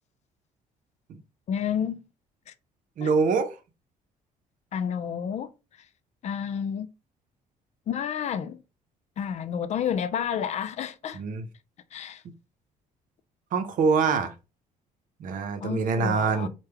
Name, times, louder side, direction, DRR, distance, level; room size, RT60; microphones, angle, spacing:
voice 1, 1.5-2.0 2.5-2.6 3.0-3.1 4.7-5.5 6.2-6.9 7.9-8.6 9.2-11.2 11.9-12.2 15.6-16.5, left 8 dB, 50° left, 0.4 m, -30 dB
voice 2, 3.0-3.6 11.1-11.4 13.5-14.3 15.2-16.5, right 5 dB, 65° right, 0.6 m, -24 dB
3.3 x 2.2 x 3.3 m
cardioid pair, 100°, 15 cm